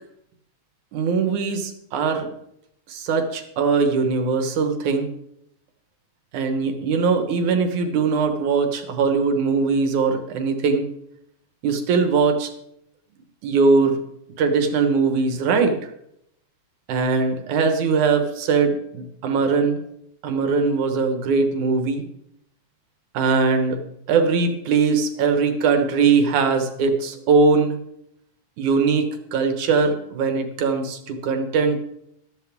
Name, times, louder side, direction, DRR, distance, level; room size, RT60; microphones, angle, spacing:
voice 1, 0.9-2.3 2.9-5.1 6.3-10.9 11.6-12.5 13.4-14.0 14.4-15.9 16.9-19.8 20.2-22.0 23.1-23.8 24.1-27.8 28.6-31.8, right 4 dB, 70° right, 6 dB, 2.7 m, -21 dB
14.0 x 13.5 x 3.6 m, 0.76 s
omnidirectional pair, 3.6 m